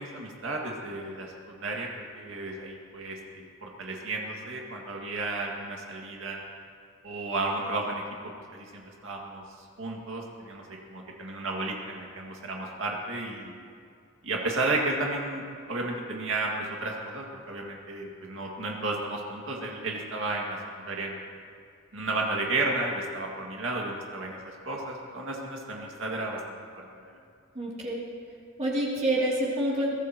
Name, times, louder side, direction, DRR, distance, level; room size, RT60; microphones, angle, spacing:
voice 1, 0.0-6.4 7.0-13.5 14.2-21.2 21.9-24.4 24.6-26.4 26.8-27.2, right 2 dB, 70° right, -1 dB, 2.2 m, -33 dB
voice 2, 27.5-28.0 28.6-29.9, right 1 dB, 35° right, -6 dB, 2.9 m, -27 dB
23.0 x 17.0 x 3.0 m, 2.3 s
head